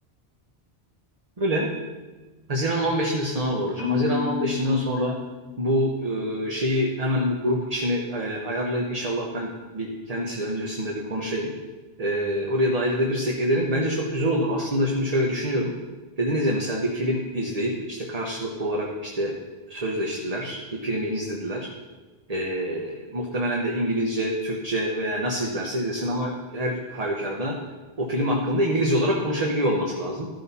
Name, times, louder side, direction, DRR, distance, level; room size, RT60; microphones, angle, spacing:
voice 1, 1.4-1.7 2.5-5.2 5.6-11.5 12.0-15.7 16.2-19.3 19.7-21.7 22.3-27.6 28.0-30.3, equal, 40° right, -1 dB, 1.0 m, -26 dB
Marimba xylophone, 3.8-6.0, left 9 dB, 60° left, 1.4 m, -31 dB
13.5 x 6.3 x 4.1 m, 1.3 s
omnidirectional pair, 1.1 m